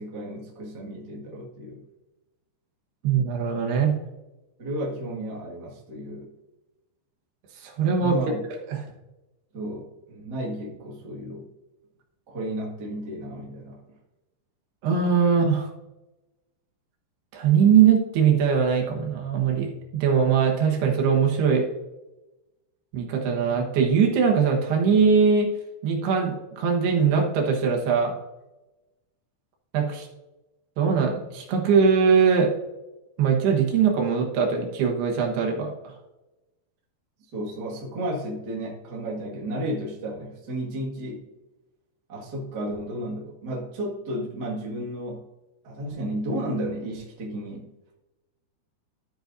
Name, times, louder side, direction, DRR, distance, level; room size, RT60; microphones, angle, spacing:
voice 1, 0.0-1.8 4.6-6.3 7.9-8.4 9.5-11.5 12.3-13.8 37.3-41.3 42.1-45.2 45.6-47.7, right 1 dB, 40° right, -4 dB, 1.4 m, -33 dB
voice 2, 3.0-3.9 7.6-8.3 8.7-8.8 14.8-15.7 17.3-21.7 22.9-25.5 25.8-28.1 29.7-30.1 30.8-32.5 33.2-35.9, right 6 dB, 75° right, 1 dB, 3.3 m, -21 dB
12.5 x 7.9 x 2.6 m, 1.0 s
omnidirectional pair, 4.8 m